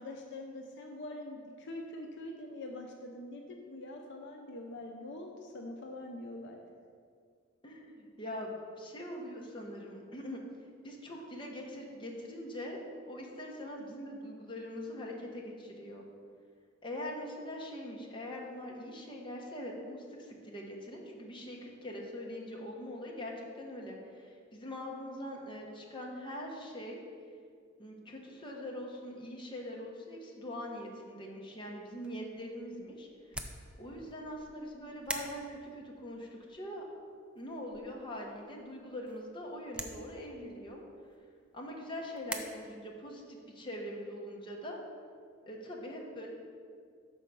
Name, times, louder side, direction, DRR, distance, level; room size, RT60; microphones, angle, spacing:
voice 1, 0.0-6.6, left 1 dB, 60° left, 2 dB, 0.6 m, -44 dB
voice 2, 7.6-8.5 8.8-10.4 10.8-12.8 13.1-16.1 16.8-27.0 27.8-36.8 37.3-40.8 41.5-44.8 45.4-46.3, left 1 dB, 25° left, -1 dB, 0.9 m, -43 dB
sound 1, 31.8-42.4, right 1 dB, 5° right, 0.4 m, -47 dB
6.3 x 4.5 x 5.4 m, 2.1 s
head